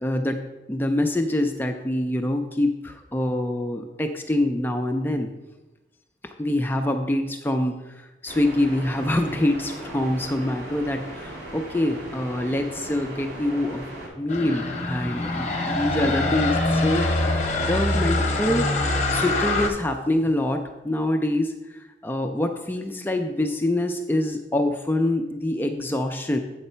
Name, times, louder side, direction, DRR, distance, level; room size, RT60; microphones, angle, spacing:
voice 1, 0.0-0.4 0.7-5.3 6.4-7.7 8.2-11.0 11.5-13.9 14.2-17.1 17.6-20.6 20.8-26.4, left 1 dB, 10° left, 5 dB, 0.4 m, -25 dB
sound 1, 8.3-14.1, right 1 dB, 80° right, 2.5 m, -38 dB
sound 2, 14.3-19.7, left 2 dB, 40° left, 0.8 m, -24 dB
7.9 x 4.1 x 5.5 m, 1.0 s
head